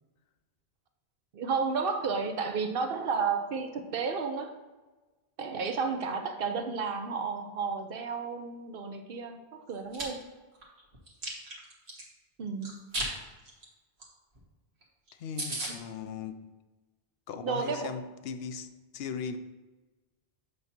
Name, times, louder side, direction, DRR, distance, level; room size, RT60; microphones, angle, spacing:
voice 1, 1.3-4.5 5.4-10.2 12.4-12.7 17.4-17.9, right 5 dB, 65° right, 0.8 m, -32 dB
Chewing mastication, 9.7-10.0 10.5-12.0 12.6-13.1 13.4-13.6 14.0-14.1 14.3-14.4 14.8-14.9 15.1-15.2 15.4-15.7, right 1 dB, 85° right, 1.6 m, -35 dB
voice 2, 15.2-16.5 17.3-18.7 18.9-19.4, left 6 dB, 75° left, 0.8 m, -38 dB
8.0 x 2.8 x 5.8 m
omnidirectional pair, 1.0 m